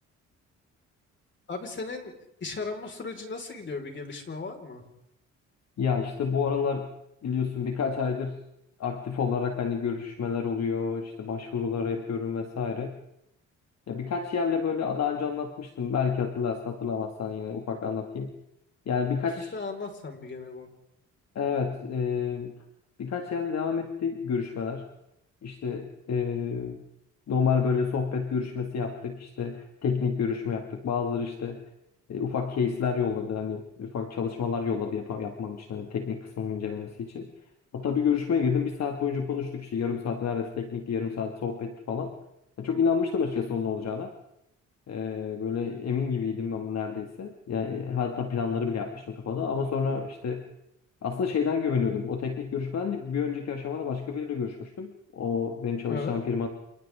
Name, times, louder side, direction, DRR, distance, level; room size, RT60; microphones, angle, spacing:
voice 1, 1.5-2.1 2.4-4.8 19.5-20.7 55.9-56.2, left 4 dB, 40° left, 3 dB, 5.1 m, -36 dB
voice 2, 5.8-6.9 7.2-8.4 8.8-13.0 13.9-18.3 18.9-19.5 21.3-22.5 23.0-24.9 25.4-26.8 27.3-31.6 32.1-37.3 37.7-42.2 42.6-44.1 44.9-50.5 51.0-56.5, left 6 dB, 60° left, 3 dB, 2.3 m, -29 dB
30.0 x 28.5 x 3.8 m, 0.80 s
cardioid pair, 90°, 30 cm